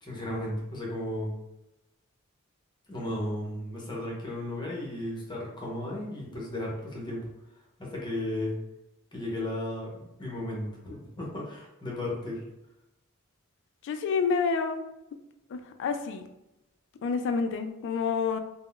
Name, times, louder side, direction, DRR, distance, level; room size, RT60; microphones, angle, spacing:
voice 1, 0.0-1.3 2.9-7.3 7.8-8.6 9.1-12.4, left 1 dB, 20° left, -3 dB, 0.8 m, -34 dB
voice 2, 13.8-14.8 15.5-16.2 17.0-18.4, left 5 dB, 55° left, 7 dB, 0.3 m, -28 dB
3.6 x 2.0 x 2.3 m, 0.92 s
head